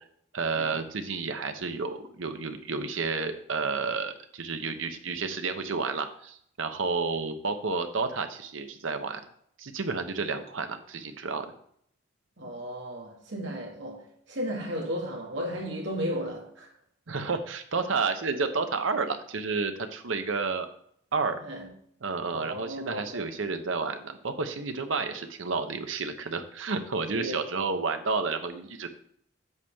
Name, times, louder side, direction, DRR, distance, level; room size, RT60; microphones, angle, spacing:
voice 1, 0.3-9.2 9.6-11.5 17.1-20.7 21.1-21.4 22.0-28.9, right 4 dB, 90° right, 0.9 m, -31 dB
voice 2, 12.4-16.7 21.4-21.7 22.3-23.3 27.1-27.5, equal, 70° right, 2.1 m, -35 dB
8.1 x 7.1 x 3.5 m
head